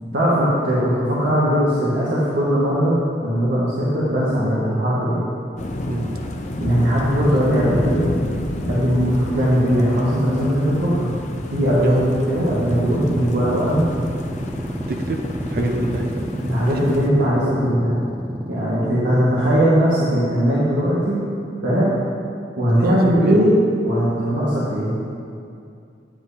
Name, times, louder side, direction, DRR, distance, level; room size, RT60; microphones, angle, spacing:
voice 1, 0.1-5.2 6.6-8.1 8.7-11.1 11.5-13.9 15.6-15.9 16.4-18.0 18.5-21.2 21.6-21.9 22.6-23.5 23.8-25.0, equal, 75° right, -8 dB, 1.6 m, -19 dB
sound 1, 5.6-17.1, left 1 dB, 40° left, 0.6 m, -30 dB
voice 2, 5.9-6.2 11.8-12.1 14.9-16.3 18.8-19.1 22.7-23.4 24.2-24.4, right 1 dB, 50° right, 3 dB, 0.6 m, -27 dB
sound 2, 12.4-19.7, equal, 10° right, 0.4 m, -30 dB
9.7 x 9.1 x 2.8 m, 2.4 s
head